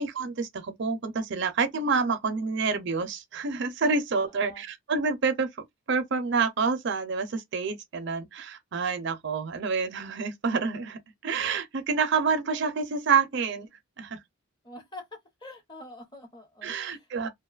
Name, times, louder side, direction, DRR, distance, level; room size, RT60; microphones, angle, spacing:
voice 1, 0.0-5.5 5.9-13.7 14.0-14.2 16.6-17.3, right 5 dB, 55° right, 0.5 m, -28 dB
voice 2, 4.2-4.6 14.6-15.0 15.4-17.3, left 1 dB, 20° left, 0.8 m, -46 dB
2.5 x 2.2 x 2.3 m
head